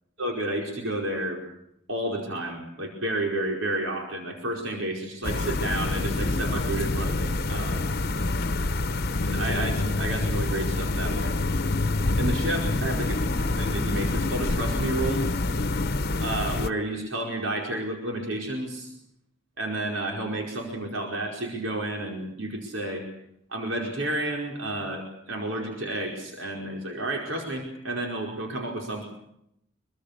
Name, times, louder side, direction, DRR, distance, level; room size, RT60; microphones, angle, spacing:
voice 1, 0.2-1.4 1.9-7.9 9.2-11.3 12.2-15.2 16.2-18.9 19.6-23.1 23.5-29.1, right 1 dB, 85° right, 1 dB, 4.9 m, -31 dB
sound 1, 5.2-16.7, left 2 dB, 50° left, 1.0 m, -26 dB
25.5 x 23.5 x 6.7 m, 0.77 s
head